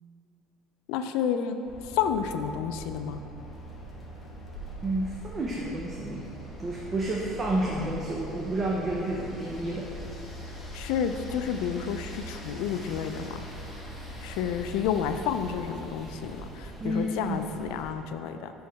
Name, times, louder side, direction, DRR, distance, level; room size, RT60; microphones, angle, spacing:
voice 1, 0.9-1.6 1.9-3.2 10.7-13.4 14.2-18.5, left 8 dB, 80° left, 8 dB, 0.3 m, -30 dB
sound 1, 1.7-16.4, equal, 55° left, 0.8 m, -42 dB
sound 2, 3.4-17.9, equal, 10° left, 0.9 m, -48 dB
voice 2, 4.8-6.3 6.6-9.9 16.8-17.1, right 1 dB, 25° right, -3 dB, 0.5 m, -30 dB
5.2 x 4.6 x 4.7 m, 2.8 s
cardioid pair, 150°, 0 cm